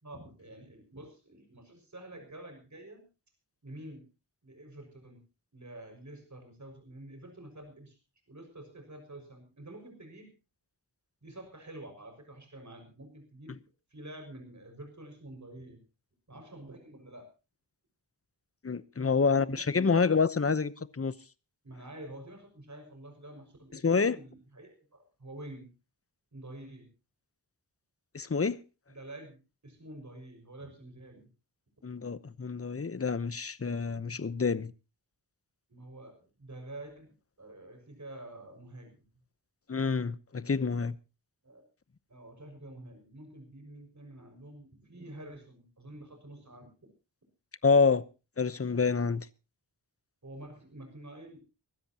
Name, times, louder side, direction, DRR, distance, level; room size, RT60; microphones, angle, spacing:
voice 1, 0.0-3.0 3.6-4.1 4.4-5.2 5.5-8.0 8.3-10.3 11.2-13.6 13.9-15.8 16.3-17.3 19.0-20.2 21.6-25.7 26.3-26.9 28.9-29.4 29.6-31.3 35.7-39.0 41.4-41.6 42.1-46.7 50.2-51.4, right 1 dB, 40° right, 6.0 m, -48 dB
voice 2, 18.6-21.1 23.8-24.2 28.1-28.6 31.8-34.7 39.7-41.0 47.6-48.0 48.4-49.3, left 5 dB, 35° left, 0.9 m, -27 dB
24.0 x 13.0 x 2.9 m
wide cardioid pair, 70°, 42 cm